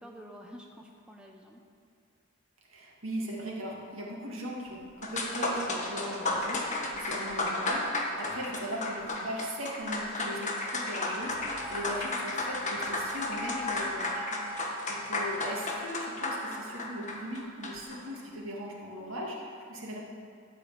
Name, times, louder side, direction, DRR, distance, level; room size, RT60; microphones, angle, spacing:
voice 1, 0.0-1.6 9.1-9.3 14.3-14.6, equal, 5° right, 0 dB, 0.8 m, -49 dB
voice 2, 2.7-14.2 14.8-20.0, equal, 70° right, -3 dB, 2.3 m, -39 dB
sound 1, 4.7-4.8 5.0-18.0, left 2 dB, 35° left, 1.4 m, -33 dB
sound 2, 11.2-16.6, left 2 dB, 30° right, 3.0 m, -44 dB
13.5 x 4.9 x 8.5 m, 2.4 s
head